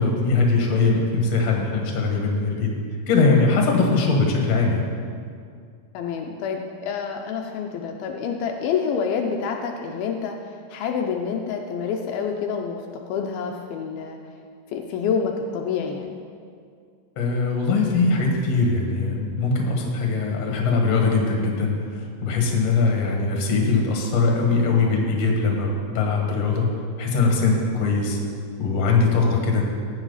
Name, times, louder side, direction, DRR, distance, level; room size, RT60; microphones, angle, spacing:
voice 1, 0.0-2.7 3.1-4.9 17.2-26.7 27.0-28.2 28.6-29.6, left 4 dB, 50° left, 0 dB, 2.5 m, -21 dB
voice 2, 5.9-12.8 13.1-14.2 14.7-16.2, left 6 dB, 80° left, 2 dB, 2.5 m, -27 dB
15.0 x 9.7 x 4.1 m, 2.2 s
omnidirectional pair, 4.3 m